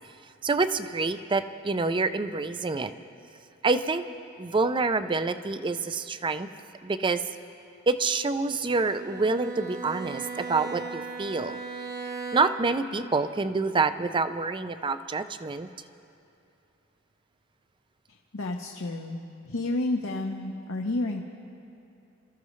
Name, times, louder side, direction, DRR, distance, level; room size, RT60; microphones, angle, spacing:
voice 1, 0.4-2.9 3.6-4.1 4.4-6.5 6.8-7.2 7.9-11.6 12.3-15.7, right 3 dB, 25° right, 11 dB, 0.4 m, -27 dB
Bowed string instrument, 8.8-12.8, right 4 dB, 50° right, 1.3 m, -37 dB
voice 2, 18.3-19.2 19.5-21.2, left 2 dB, 75° left, 1 dB, 0.9 m, -30 dB
28.0 x 14.0 x 3.1 m, 2.6 s
head